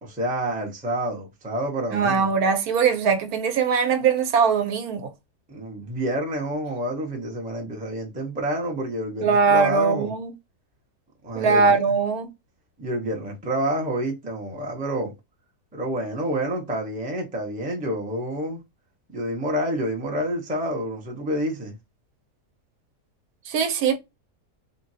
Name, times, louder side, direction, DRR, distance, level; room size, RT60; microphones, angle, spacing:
voice 1, 0.0-2.3 5.5-10.1 11.2-11.8 12.8-15.1 15.7-18.6 19.1-21.8, equal, 10° right, 0.5 m, -28 dB
voice 2, 1.9-5.1 9.2-10.3 11.3-12.3 23.5-24.0, right 5 dB, 75° right, 1.1 m, -21 dB
3.8 x 2.2 x 2.6 m
omnidirectional pair, 1.7 m